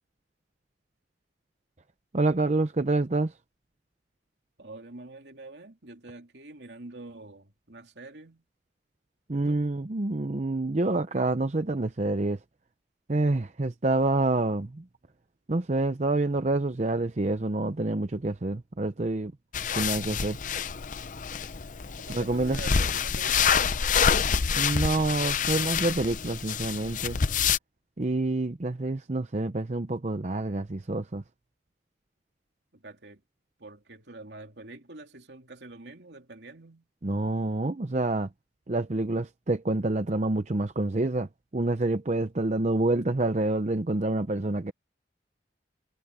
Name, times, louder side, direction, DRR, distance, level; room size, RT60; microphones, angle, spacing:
voice 1, 2.1-3.3 9.3-12.4 13.1-14.8 15.5-19.3 19.8-20.4 22.1-22.6 24.6-27.2 28.0-31.2 37.0-38.3 38.7-41.3 41.5-44.7, right 2 dB, 40° right, 0.7 m, -27 dB
voice 2, 4.6-8.4 9.3-9.6 22.0-23.8 32.7-33.2 33.6-36.9, right 2 dB, 75° right, 2.8 m, -46 dB
sound 1, 19.5-27.6, left 6 dB, 45° left, 0.6 m, -27 dB
head